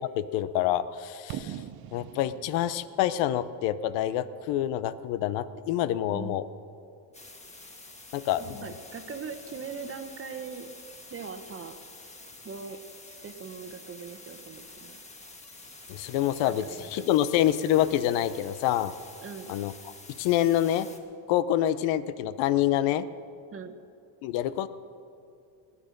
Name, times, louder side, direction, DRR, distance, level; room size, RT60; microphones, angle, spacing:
voice 1, 0.1-1.6 1.9-6.4 8.1-8.6 15.9-18.9 19.5-19.7 20.2-20.9 21.3-23.1 24.2-24.7, left 12 dB, 80° left, 14 dB, 0.7 m, -26 dB
Fireworks, 1.3-5.2, right 11 dB, 55° right, 0.7 m, -43 dB
sound 1, 7.1-21.0, left 2 dB, 15° left, 1.7 m, -48 dB
voice 2, 8.4-10.7 11.1-11.8 12.4-12.8 13.1-15.0 16.6-17.1 19.2-19.5 23.5-23.8, right 5 dB, 30° right, 8 dB, 1.0 m, -41 dB
17.5 x 9.9 x 6.6 m, 2.5 s
cardioid pair, 115°, 44 cm